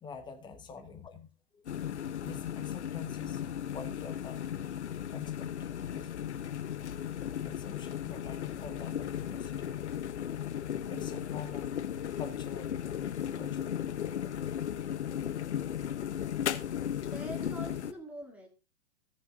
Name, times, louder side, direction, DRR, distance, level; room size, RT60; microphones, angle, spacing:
voice 1, 0.0-4.5 5.1-6.2 7.4-9.8 10.9-12.8 13.4-14.3, left 5 dB, 15° left, 1.2 m, -47 dB
sound 1, 1.7-17.9, left 10 dB, 80° left, 0.9 m, -36 dB
voice 2, 17.1-18.5, right 1 dB, 5° right, 2.6 m, -43 dB
14.5 x 6.9 x 3.7 m
hypercardioid pair, 130°, 33 cm